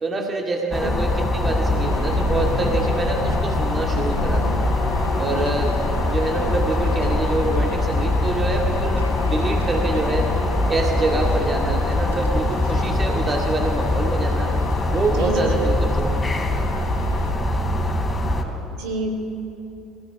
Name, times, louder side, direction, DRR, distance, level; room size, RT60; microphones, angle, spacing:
voice 1, 0.0-4.6 5.2-5.8 6.1-10.3 10.7-14.5 14.9-16.5, right 3 dB, 25° right, 2 dB, 2.2 m, -26 dB
sound 1, 0.7-18.4, left 2 dB, 20° left, 3.7 m, -22 dB
sound 2, 1.8-17.3, left 4 dB, 85° left, 1.3 m, -36 dB
voice 2, 15.1-15.5 18.7-19.1, right 3 dB, 60° right, 3 dB, 3.9 m, -29 dB
22.5 x 16.0 x 8.7 m, 2.8 s
figure-of-eight pair, 60°, 0 cm